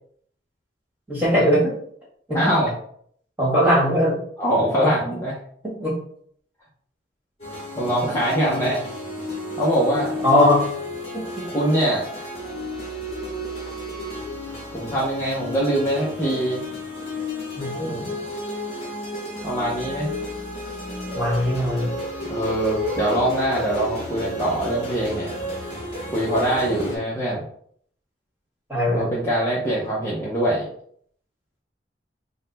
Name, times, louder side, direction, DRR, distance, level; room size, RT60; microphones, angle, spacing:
voice 1, 1.1-1.7 2.3-2.4 3.4-4.2 4.8-4.9 5.6-6.0 10.2-10.6 11.1-11.4 17.6-18.1 21.1-22.0 28.7-29.1, equal, 10° right, -6 dB, 1.6 m, -20 dB
voice 2, 2.3-2.7 4.4-5.3 7.8-8.8 9.6-10.2 11.5-12.2 14.7-16.6 17.8-18.1 19.4-20.1 22.3-25.3 26.1-27.5 28.9-30.7, right 1 dB, 15° left, -7 dB, 0.7 m, -23 dB
sound 1, 7.4-27.0, left 1 dB, 35° left, 1.1 m, -32 dB
3.9 x 2.1 x 3.9 m, 0.62 s
head